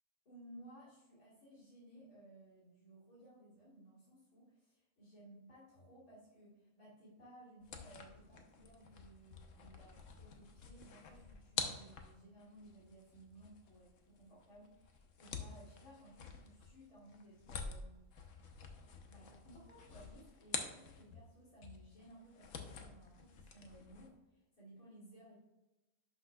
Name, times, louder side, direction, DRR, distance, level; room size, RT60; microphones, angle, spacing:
voice 1, 0.2-18.1 19.1-25.4, right 1 dB, 90° left, -8 dB, 3.2 m, -59 dB
sound 1, 7.6-21.3 21.6-24.1, left 5 dB, 65° left, 1.2 m, -48 dB
11.0 x 5.9 x 2.3 m, 1.1 s
omnidirectional pair, 1.5 m